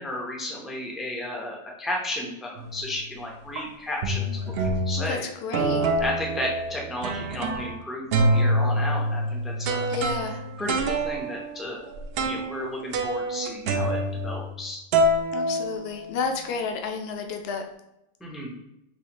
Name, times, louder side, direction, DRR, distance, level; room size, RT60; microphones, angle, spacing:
voice 1, 0.0-4.5 4.9-5.3 6.0-9.9 10.6-11.9 12.2-14.8 18.2-18.6, left 1 dB, ahead, -1 dB, 0.4 m, -33 dB
sound 1, 2.6-2.9 3.6-3.7 4.0-5.1 5.5-7.8 8.1-14.6 14.9-16.3, right 1 dB, 65° right, 0.6 m, -26 dB
voice 2, 5.1-5.8 9.9-10.4 15.3-17.6, left 4 dB, 60° left, 4 dB, 0.7 m, -31 dB
5.5 x 2.5 x 2.9 m, 0.87 s
omnidirectional pair, 1.4 m